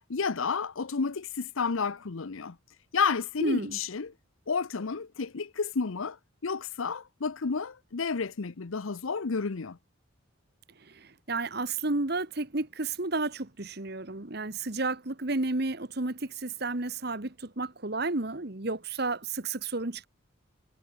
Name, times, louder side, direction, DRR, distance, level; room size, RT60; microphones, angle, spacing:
voice 1, 0.1-2.5 2.9-4.1 4.5-6.2 6.4-9.8, left 5 dB, 80° left, 0.8 m, -31 dB
voice 2, 3.4-3.8 10.8-20.1, right 3 dB, 50° right, 1.5 m, -32 dB
head